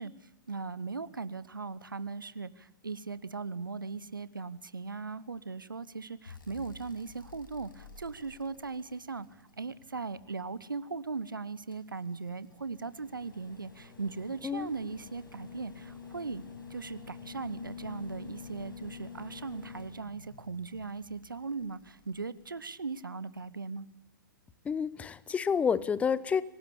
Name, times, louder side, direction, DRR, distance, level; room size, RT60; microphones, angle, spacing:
voice 1, 0.0-16.4 16.7-23.9, right 4 dB, 75° right, 17 dB, 1.1 m, -39 dB
sound 1, 6.3-10.4 11.7-22.9 24.5-24.6, left 5 dB, 75° left, 6.4 m, -49 dB
voice 2, 24.6-26.4, left 6 dB, 10° left, 18 dB, 0.9 m, -29 dB
25.5 x 18.5 x 8.5 m, 0.86 s
figure-of-eight pair, 110°, 11 cm